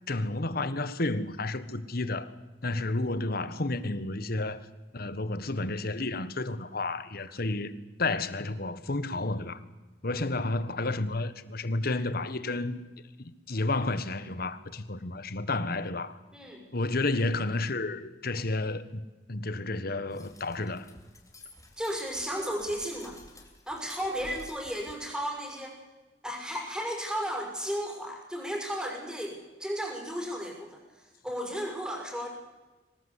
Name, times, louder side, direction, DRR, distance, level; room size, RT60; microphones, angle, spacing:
voice 1, 0.1-2.3 2.6-4.6 4.9-7.7 8.0-9.6 10.0-12.8 13.5-16.2 16.7-19.0 19.3-20.9, left 2 dB, 55° left, 1.5 m, -31 dB
voice 2, 16.3-16.6 21.8-23.2 23.7-25.8 26.2-32.3, equal, 5° right, 6.0 m, -34 dB
horse steps and chain, 20.1-25.1, left 2 dB, 20° left, 3.4 m, -52 dB
24.5 x 18.5 x 8.3 m
head